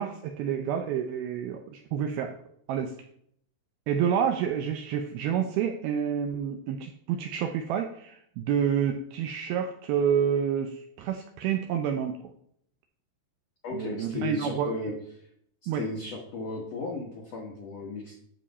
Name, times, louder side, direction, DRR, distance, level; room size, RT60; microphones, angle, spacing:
voice 1, 0.0-2.3 2.7-2.9 3.9-12.2 13.7-14.7 15.7-15.8, right 8 dB, 80° right, 5 dB, 2.3 m, -28 dB
voice 2, 13.6-15.3 15.6-18.2, left 3 dB, 65° left, -1 dB, 1.6 m, -35 dB
10.0 x 7.1 x 4.1 m, 0.68 s
omnidirectional pair, 4.9 m